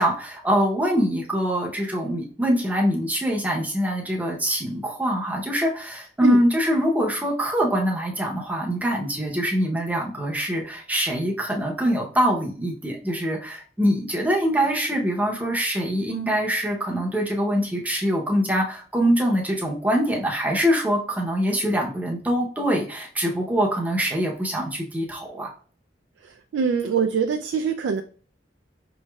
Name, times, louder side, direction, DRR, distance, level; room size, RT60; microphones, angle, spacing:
voice 1, 0.0-25.5, equal, 10° right, -1 dB, 0.7 m, -24 dB
voice 2, 26.5-28.0, right 6 dB, 90° right, 7 dB, 0.3 m, -23 dB
5.3 x 3.0 x 2.3 m, 0.43 s
head